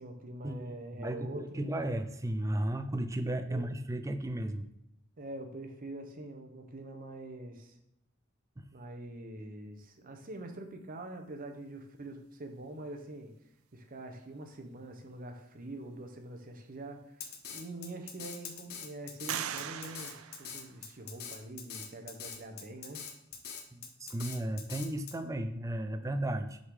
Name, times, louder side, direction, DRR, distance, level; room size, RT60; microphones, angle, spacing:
voice 1, 0.0-1.6 3.5-3.7 5.2-7.8 8.7-13.3 13.7-23.0, right 1 dB, 45° right, 5 dB, 0.8 m, -45 dB
voice 2, 1.0-4.7 8.6-8.7 23.7-26.6, right 1 dB, 15° right, 8 dB, 0.4 m, -34 dB
sound 1, 17.0-17.1 17.7-18.4 19.3-21.2, right 10 dB, 90° right, 0.4 m, -41 dB
Drum kit, 17.2-25.1, left 7 dB, 50° left, 0.7 m, -43 dB
6.3 x 3.6 x 4.8 m, 0.80 s
head